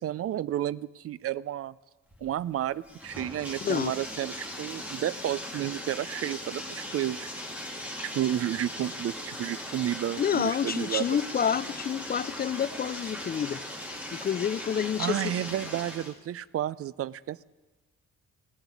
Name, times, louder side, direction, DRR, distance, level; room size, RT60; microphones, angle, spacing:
voice 1, 0.0-1.7 2.2-7.3 8.0-11.1 15.0-17.4, right 12 dB, 50° right, 20 dB, 0.4 m, -31 dB
Bathtub (filling or washing), 2.1-16.1, left 1 dB, 5° right, 2.5 m, -39 dB
voice 2, 10.2-15.3, left 8 dB, 35° left, 18 dB, 0.4 m, -29 dB
17.0 x 6.9 x 9.7 m, 1.2 s
cardioid pair, 90°, 30 cm